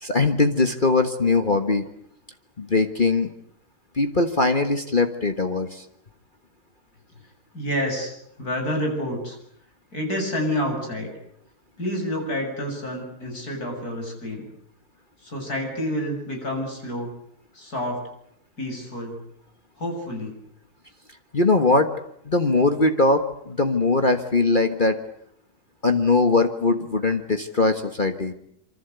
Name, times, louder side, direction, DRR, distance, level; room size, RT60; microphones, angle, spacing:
voice 1, 0.0-1.8 2.6-3.3 3.9-5.8 21.3-21.9 22.2-25.0 25.8-28.3, left 3 dB, 30° left, 7 dB, 1.6 m, -21 dB
voice 2, 7.5-9.4 9.9-11.1 11.8-14.5 15.2-17.1 17.5-18.0 18.6-19.2 19.8-20.3, equal, 65° left, 2 dB, 8.5 m, -28 dB
26.5 x 25.0 x 8.2 m, 0.71 s
omnidirectional pair, 1.7 m